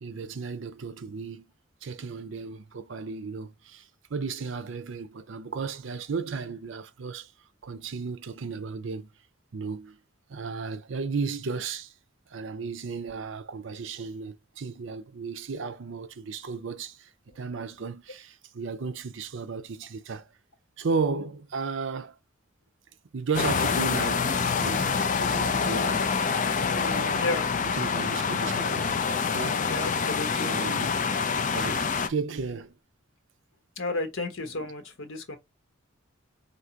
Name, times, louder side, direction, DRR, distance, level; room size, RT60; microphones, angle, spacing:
voice 1, 0.0-1.5 1.8-3.9 4.1-7.3 7.6-9.1 9.5-10.0 10.3-11.9 12.3-17.1 17.4-20.3 20.8-22.2 23.1-24.3 24.6-26.1 26.7-27.2 27.7-29.0 29.3-30.0 30.4-30.9 31.5-32.7, right 4 dB, 65° right, 0.5 m, -34 dB
sound 1, 23.3-32.1, left 5 dB, 40° left, 0.5 m, -26 dB
voice 2, 27.2-27.7 29.6-30.5 33.8-35.4, left 2 dB, 80° left, 1.2 m, -32 dB
4.7 x 2.8 x 2.8 m
head